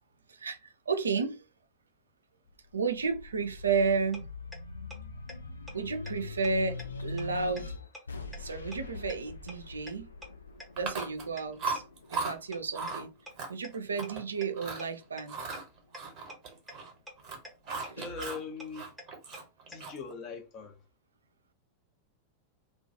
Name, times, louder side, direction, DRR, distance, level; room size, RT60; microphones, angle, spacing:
voice 1, 0.3-1.4 2.7-4.2 5.7-7.7 8.4-10.1 10.8-11.8 12.1-13.1 13.5-15.5 17.9-18.1, right 4 dB, 75° right, 0.3 m, -32 dB
sound 1, 2.5-13.3 13.8-14.9, left 3 dB, 75° left, 0.4 m, -43 dB
sound 2, 4.1-4.2 4.5-4.6 4.9-5.0 5.3-5.4 5.7-5.8 6.1-6.2 6.4-6.5 6.8-6.9 7.2-7.3 7.6-7.7 7.9-8.0 8.3-8.4 8.7-8.8 9.1-9.2 9.5-9.6 9.9-10.0 10.2-10.3 10.6-10.7 11.0-11.1 11.4-11.5 11.7-11.8 12.1-12.2 12.5-12.6 12.9-13.0 13.3-13.4 13.6-13.7 14.0-14.1 14.4-14.5 14.8-14.9 15.2-15.3 15.5-15.6 15.9-16.0 16.3-16.4 16.7-16.8 17.1-17.2 17.4-17.5 17.8-17.9 18.2-18.3 18.6-18.7 19.0-19.1 19.3-19.4 19.7-19.8, left 1 dB, ahead, 0.7 m, -44 dB
Chewing mastication, 10.8-11.3 11.6-12.3 12.7-13.0 13.4-14.2 14.5-14.9 15.3-16.9 17.2-18.4 18.7-20.1, right 4 dB, 35° right, 0.8 m, -37 dB
voice 2, 18.0-18.8 19.7-20.7, left 5 dB, 35° left, 0.6 m, -40 dB
2.2 x 2.1 x 2.7 m
figure-of-eight pair, 90°, 0 cm